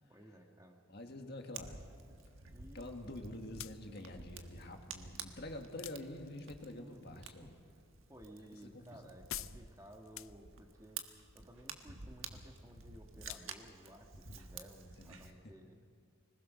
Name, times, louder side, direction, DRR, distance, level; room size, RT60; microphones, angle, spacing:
voice 1, 0.1-0.8 2.5-3.1 4.1-4.2 6.7-7.5 8.1-11.0 11.3-15.8, equal, 15° right, 2 dB, 1.6 m, -56 dB
voice 2, 0.9-1.9 2.7-7.6 8.4-9.0 15.0-15.4, left 1 dB, 50° left, 3 dB, 1.8 m, -47 dB
Fire, 1.5-15.3, right 5 dB, 70° right, 1.5 m, -51 dB
sound 1, 3.4-15.4, left 13 dB, 75° left, 0.5 m, -53 dB
26.0 x 20.0 x 6.4 m, 2.2 s
head